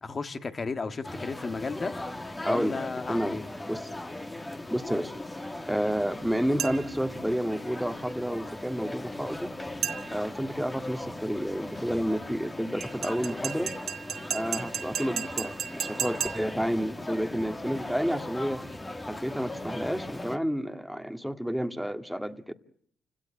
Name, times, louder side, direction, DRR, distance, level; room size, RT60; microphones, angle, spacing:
voice 1, 0.0-1.9 2.5-3.5, left 4 dB, 35° left, 9 dB, 1.7 m, -33 dB
sound 1, 1.0-20.4, left 1 dB, 15° left, 1.7 m, -38 dB
voice 2, 2.4-2.8 3.1-3.9 4.7-5.1 5.7-9.5 10.1-13.7 14.3-18.6 19.1-22.5, equal, ahead, 7 dB, 1.9 m, -30 dB
sound 2, 6.6-7.0 9.8-10.3 12.8-16.6, right 8 dB, 65° right, 2.0 m, -34 dB
29.0 x 17.5 x 9.2 m, 0.67 s
cardioid pair, 90°, 0 cm